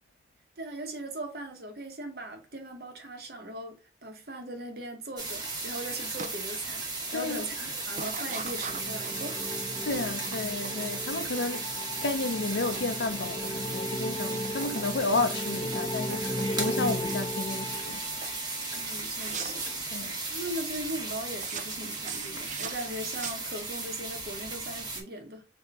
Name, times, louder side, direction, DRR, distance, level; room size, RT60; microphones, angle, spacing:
voice 1, 0.6-9.6 18.8-19.7 20.3-25.5, right 1 dB, 60° right, 1.1 m, -39 dB
sound 1, 5.2-25.0, right 3 dB, 25° right, 1.0 m, -36 dB
sound 2, 6.2-6.4 6.8-7.2 7.9-14.0 14.2-14.9 15.2-17.2 17.7-18.0 18.2-18.4 19.1-19.7 21.3-23.8, right 5 dB, 40° right, 0.4 m, -42 dB
voice 2, 7.1-7.5 9.8-11.7 12.0-18.0 19.9-20.2, left 3 dB, 85° left, 0.6 m, -32 dB
sound 3, 7.8-18.5, left 1 dB, 15° left, 0.4 m, -36 dB
3.5 x 2.9 x 4.7 m
head